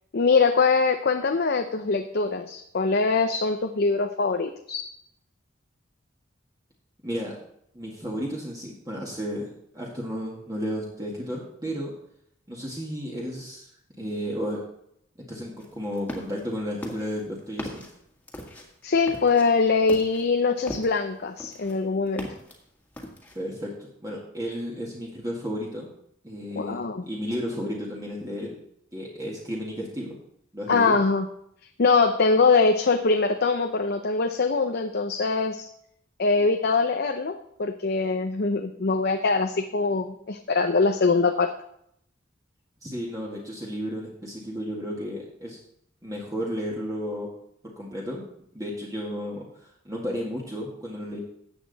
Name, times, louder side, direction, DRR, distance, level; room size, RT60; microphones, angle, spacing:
voice 1, 0.1-4.8 18.8-22.3 26.6-27.1 30.7-31.3 31.8-35.7 36.2-41.5, left 4 dB, 55° left, 6 dB, 0.6 m, -23 dB
voice 2, 7.0-7.4 7.7-11.9 12.5-13.7 14.0-14.6 15.3-17.8 23.4-25.9 26.2-28.6 28.9-30.2 30.5-31.0 42.8-45.6 46.0-47.3 47.8-48.2 48.5-51.2, equal, 20° right, -3 dB, 1.8 m, -33 dB
sound 1, 15.6-16.4 16.8-21.1 21.4-22.6 22.9-23.5, equal, 10° left, 1.9 m, -38 dB
14.0 x 8.4 x 4.1 m, 0.73 s
head